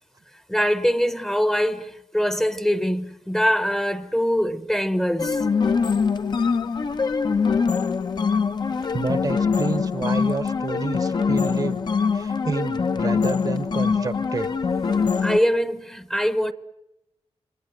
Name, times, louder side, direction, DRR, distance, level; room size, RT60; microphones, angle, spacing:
voice 1, 0.5-5.5 8.8-8.9 15.2-16.5, equal, 5° left, 1.0 m, -23 dB
sound 1, 5.2-15.4, left 5 dB, 40° left, 0.9 m, -23 dB
voice 2, 8.9-11.8 12.1-14.5 15.2-15.3, right 4 dB, 35° right, 1.0 m, -29 dB
28.5 x 25.0 x 7.9 m
wide cardioid pair, 165°, 11 cm